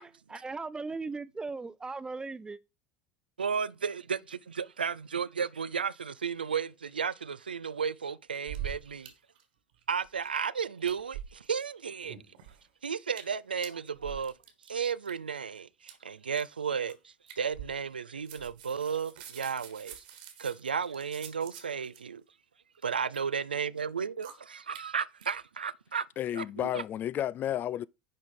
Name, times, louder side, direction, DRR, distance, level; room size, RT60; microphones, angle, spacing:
voice 1, 0.0-2.6, right 3 dB, 15° right, 0.7 m, -38 dB
voice 2, 3.4-9.1 9.9-12.2 12.8-14.3 14.6-20.0 20.4-22.2 22.8-26.1 26.3-26.8, right 6 dB, 85° right, 0.4 m, -34 dB
chewing sounds, 8.3-9.1 9.3-9.4 9.7-10.5 10.8-11.6 12.0-12.7 13.1-13.4 13.6-15.1 15.8-15.9 16.3-16.5 16.9-17.0 17.3-18.0 18.2-22.0 22.7-23.2 23.8-23.9 24.2-24.3 24.7-24.8 25.2-25.3, right 10 dB, 70° right, 1.8 m, -45 dB
voice 3, 26.2-27.9, left 11 dB, 40° left, 0.3 m, -32 dB
10.5 x 4.0 x 5.4 m
figure-of-eight pair, 70°, 5 cm